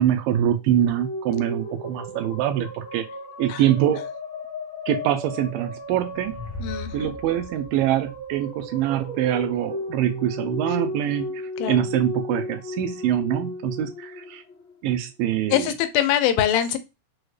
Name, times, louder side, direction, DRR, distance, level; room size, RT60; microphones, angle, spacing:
voice 1, 0.0-3.1 3.4-4.0 4.9-6.3 6.9-11.4 11.7-14.4 14.8-15.7, right 11 dB, 80° right, 2.1 m, -24 dB
sound 1, 0.6-15.1, left 1 dB, 60° left, 1.8 m, -35 dB
sound 2, 5.8-9.0, left 2 dB, 55° right, 1.0 m, -40 dB
voice 2, 6.6-7.1 11.6-11.9 15.5-16.8, left 11 dB, 85° left, 2.4 m, -23 dB
6.3 x 2.3 x 3.1 m
omnidirectional pair, 4.2 m